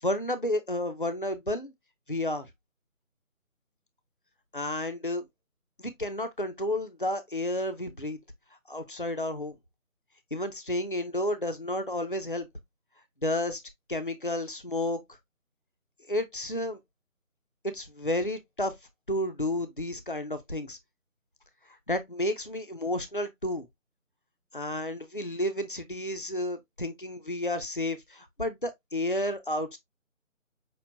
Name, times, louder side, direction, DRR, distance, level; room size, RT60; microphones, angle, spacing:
voice 1, 0.0-1.7 2.1-2.5 4.5-5.2 5.8-8.2 8.7-9.5 10.3-12.5 13.2-13.6 13.9-15.0 16.1-16.8 17.6-18.7 19.1-20.8 21.9-23.6 24.5-29.8, left 1 dB, 40° left, 0.4 m, -31 dB
5.9 x 2.5 x 2.5 m
figure-of-eight pair, 160°, 41 cm